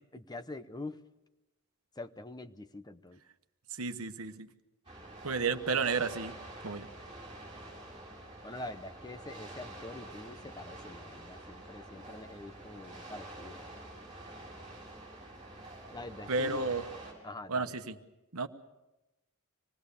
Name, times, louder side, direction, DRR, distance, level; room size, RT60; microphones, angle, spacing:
voice 1, 0.1-1.0 2.0-3.2 8.4-13.6 15.9-16.7 17.2-17.7, left 2 dB, 20° left, 10 dB, 0.7 m, -45 dB
voice 2, 3.8-4.5 5.2-6.3 6.6-6.9 16.3-16.8 17.5-17.9 18.3-18.5, right 4 dB, 75° right, 8 dB, 1.2 m, -32 dB
sound 1, 4.8-17.1, right 1 dB, 20° right, 7.2 m, -47 dB
26.0 x 19.0 x 6.9 m, 1.0 s
head